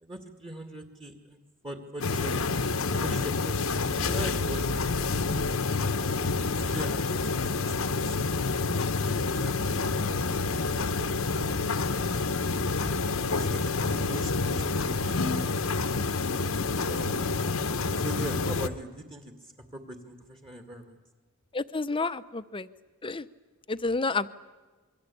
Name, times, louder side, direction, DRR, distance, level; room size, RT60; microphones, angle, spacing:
voice 1, 0.0-1.4 1.6-2.4 3.0-5.8 6.2-8.6 9.1-12.3 13.2-15.8 16.8-17.3 18.0-21.0, right 1 dB, 25° right, 5 dB, 2.2 m, -42 dB
sound 1, 2.0-18.7, left 3 dB, 70° left, 1.1 m, -28 dB
sound 2, 3.7-5.5, equal, 5° right, 1.2 m, -39 dB
voice 2, 21.5-22.7 23.0-23.3 23.7-24.3, left 3 dB, 25° left, 13 dB, 0.8 m, -30 dB
27.5 x 23.0 x 8.6 m, 1.3 s
head